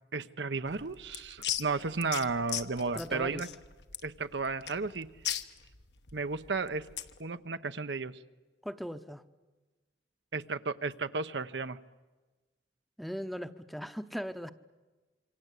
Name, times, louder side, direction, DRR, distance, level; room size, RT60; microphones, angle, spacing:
voice 1, 0.1-3.5 4.0-5.1 6.1-6.8 7.2-8.2 10.3-11.8, right 4 dB, 80° right, 11 dB, 0.9 m, -33 dB
sound 1, 0.7-7.2, left 11 dB, 70° left, 1.2 m, -39 dB
voice 2, 2.9-3.4 8.6-9.2 13.0-14.5, equal, ahead, 11 dB, 0.8 m, -38 dB
26.5 x 25.0 x 8.3 m, 1.2 s
head